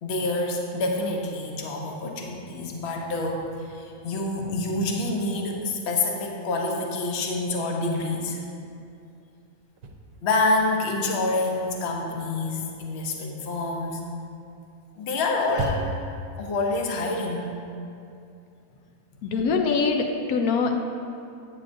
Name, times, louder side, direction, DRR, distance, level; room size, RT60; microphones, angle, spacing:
voice 1, 0.0-8.4 10.2-14.0 15.0-15.9 16.4-17.5, left 2 dB, 55° left, 1 dB, 1.0 m, -27 dB
sound 1, 9.6-10.8 11.1-16.2, right 1 dB, 70° right, 1.0 m, -37 dB
voice 2, 19.2-20.7, left 4 dB, 85° left, 3 dB, 1.1 m, -23 dB
8.9 x 8.2 x 2.6 m, 2.5 s
omnidirectional pair, 1.5 m